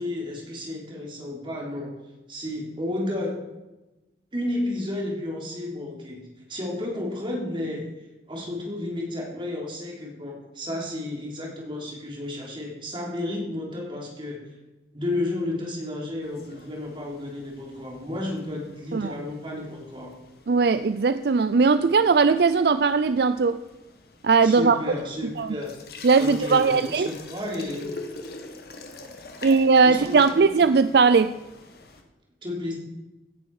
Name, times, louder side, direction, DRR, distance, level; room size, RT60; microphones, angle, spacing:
voice 1, 0.0-1.9 2.3-3.4 4.3-6.2 6.5-7.8 8.3-14.4 14.9-20.1 24.4-27.9 29.8-30.7 32.4-32.8, left 1 dB, 25° right, -2 dB, 3.6 m, -32 dB
sound 1, 16.2-32.0, left 3 dB, 55° left, 1.8 m, -45 dB
voice 2, 20.5-23.6 24.2-24.8 25.4-25.5 26.0-27.1 29.4-31.3, right 4 dB, 60° right, 12 dB, 0.4 m, -19 dB
17.0 x 10.5 x 4.9 m, 1.1 s
head